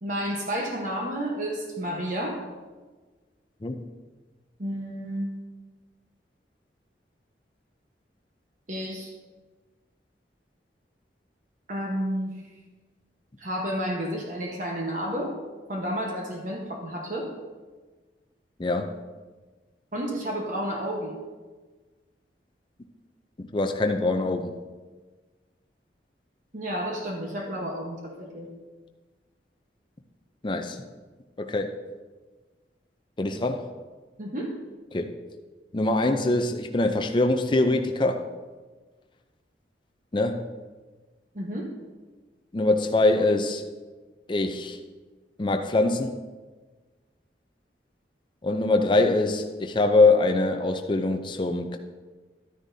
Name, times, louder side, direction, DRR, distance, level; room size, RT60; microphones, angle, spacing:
voice 1, 0.0-2.4 4.6-5.3 8.7-9.1 11.7-12.4 13.4-15.3 15.7-17.3 19.9-21.2 26.5-28.5 34.2-34.6 41.3-41.7, equal, 45° right, -1 dB, 1.1 m, -31 dB
voice 2, 18.6-19.0 23.4-24.5 30.4-30.8 31.4-31.8 33.2-33.6 34.9-35.1 35.7-38.2 40.1-40.4 42.5-43.6 44.3-44.8 45.4-46.1 48.4-51.8, left 2 dB, 25° left, 5 dB, 0.5 m, -23 dB
12.0 x 9.7 x 2.7 m, 1.3 s
head